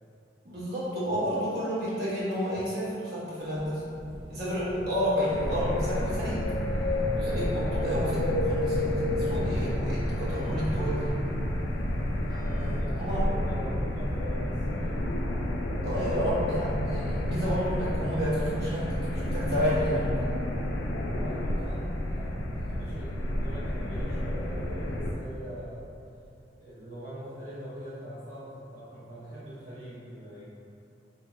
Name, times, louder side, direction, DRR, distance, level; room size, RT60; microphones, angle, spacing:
voice 1, 0.4-3.8 4.3-6.5 7.2-11.2 12.7-13.3 15.8-20.3, equal, 60° right, -10 dB, 1.2 m, -30 dB
sound 1, 3.4-12.8, equal, 25° right, 1.0 m, -42 dB
sound 2, 5.3-25.1, left 1 dB, 80° left, 0.4 m, -30 dB
voice 2, 12.4-15.1 21.1-25.8 26.6-30.5, equal, 40° right, -12 dB, 0.7 m, -43 dB
3.0 x 2.7 x 3.5 m, 2.6 s
head